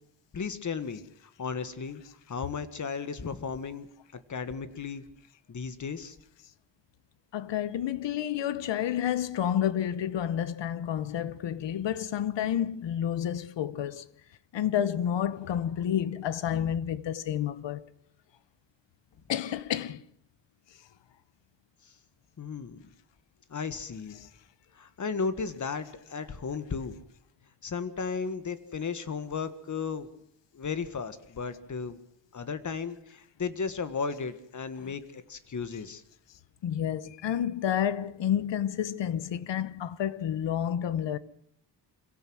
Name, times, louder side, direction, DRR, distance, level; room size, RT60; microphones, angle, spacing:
voice 1, 0.3-1.0 1.4-2.0 2.3-3.9 4.3-5.0 5.5-6.1 22.4-22.8 23.5-24.2 24.8-27.0 27.6-30.1 30.5-32.0 32.3-36.0, left 5 dB, 45° left, 1.6 m, -34 dB
voice 2, 7.3-14.1 14.5-17.8 19.3-20.0 24.2-24.3 34.8-34.9 36.6-41.2, left 10 dB, 85° left, 1.1 m, -30 dB
25.5 x 17.0 x 6.3 m
wide cardioid pair, 115°, 42 cm